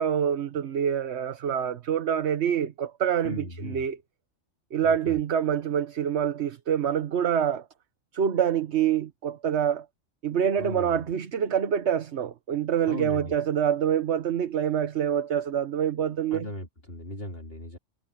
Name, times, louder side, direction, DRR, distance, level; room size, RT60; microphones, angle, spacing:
voice 1, 0.0-4.0 4.7-7.6 8.1-9.8 10.2-16.5, right 8 dB, 60° right, 1.2 m, -26 dB
voice 2, 3.2-3.9 4.8-5.2 10.6-11.1 12.9-13.3 16.3-17.8, left 1 dB, 45° left, 4.1 m, -37 dB
omnidirectional pair, 1.4 m